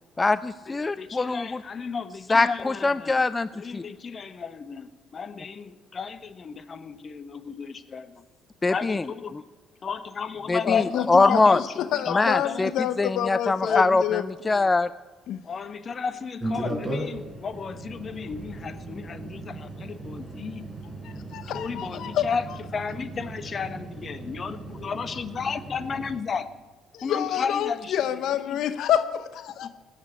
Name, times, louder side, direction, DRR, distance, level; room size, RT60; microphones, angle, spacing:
voice 1, 0.2-1.6 2.3-3.8 8.6-9.0 9.3-9.4 10.5-11.6 12.1-12.7 13.0-14.9, left 3 dB, 25° left, 15 dB, 0.4 m, -23 dB
voice 2, 0.8-3.2 3.5-8.2 8.7-9.4 9.8-12.7 13.6-14.1 15.4-20.6 21.3-22.4 22.7-26.5 27.0-28.6 29.6-29.7, left 6 dB, 45° left, 12 dB, 1.2 m, -33 dB
voice 3, 10.6-14.2 14.5-14.7 15.3-15.4 21.0-22.3 26.9-29.7, left 10 dB, 65° left, 12 dB, 0.7 m, -28 dB
sound 1, 16.4-26.2, right 2 dB, 10° right, 4.2 m, -37 dB
17.0 x 7.3 x 9.9 m, 1.3 s
hypercardioid pair, 60°, 0 cm